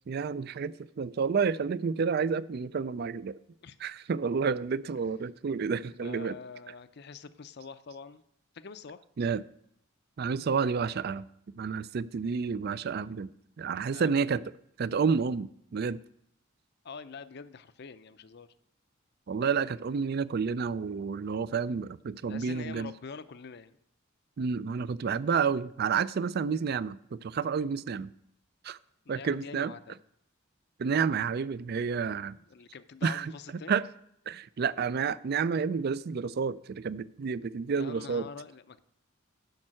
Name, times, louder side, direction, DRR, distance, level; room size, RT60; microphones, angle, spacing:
voice 1, 0.1-3.4 3.8-6.4 9.2-9.4 10.2-11.3 11.6-13.3 13.6-14.4 14.8-16.0 19.3-22.9 24.4-28.1 28.6-28.8 29.1-29.7 30.8-32.4 33.0-33.3 33.7-33.8 34.3-38.3, right 5 dB, 50° right, 0.4 m, -30 dB
voice 2, 5.9-8.2 8.5-9.0 13.9-14.1 16.8-18.5 22.3-23.8 29.0-30.0 32.3-33.8 37.7-38.8, left 5 dB, 55° left, 0.5 m, -45 dB
10.5 x 5.5 x 7.5 m
head